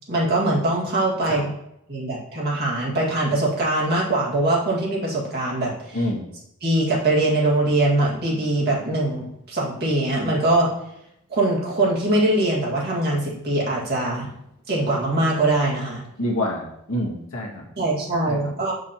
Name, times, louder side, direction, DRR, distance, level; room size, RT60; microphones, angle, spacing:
voice 1, 0.1-1.5 1.9-6.0 6.6-10.7 11.3-14.3 14.7-16.0 17.8-18.7, right 2 dB, 45° right, -5 dB, 2.0 m, -22 dB
voice 2, 5.9-6.2 16.2-17.6 18.3-18.5, left 1 dB, 65° left, 0 dB, 1.3 m, -27 dB
6.7 x 6.2 x 2.9 m, 0.79 s
head